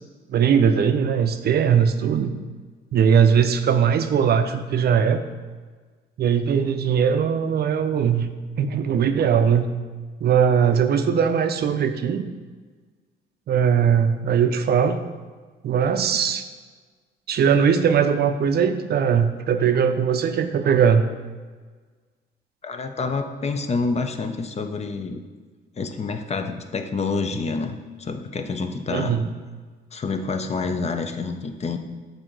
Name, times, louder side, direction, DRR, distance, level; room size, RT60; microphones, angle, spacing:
voice 1, 0.3-2.3 2.9-5.2 6.2-8.3 8.6-9.7 10.2-12.2 13.5-15.0 15.6-16.4 17.3-21.0 28.9-29.3, right 7 dB, 55° right, 9 dB, 0.5 m, -20 dB
voice 2, 22.6-25.2 25.8-29.2 29.9-31.8, left 4 dB, 35° left, 7 dB, 0.5 m, -28 dB
7.5 x 2.8 x 4.5 m, 1.4 s
cardioid pair, 90°, 20 cm